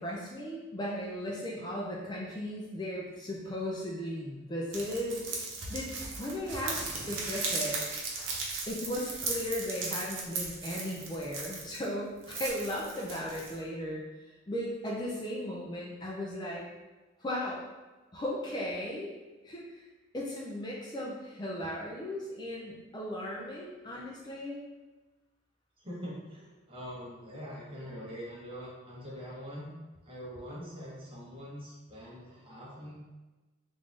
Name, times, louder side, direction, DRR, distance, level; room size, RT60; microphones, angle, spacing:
voice 1, 0.0-5.3 5.7-5.9 6.2-8.1 8.7-14.0 14.5-16.6 17.2-17.6 18.1-19.1 19.4-19.8 20.1-24.6, equal, 20° left, -4 dB, 0.4 m, -36 dB
sound 1, 4.7-11.8 12.2-13.6, right 3 dB, 85° right, 0.8 m, -37 dB
voice 2, 25.8-29.7 30.0-33.0, equal, 30° right, -6 dB, 1.0 m, -43 dB
3.7 x 2.5 x 3.2 m, 1.2 s
head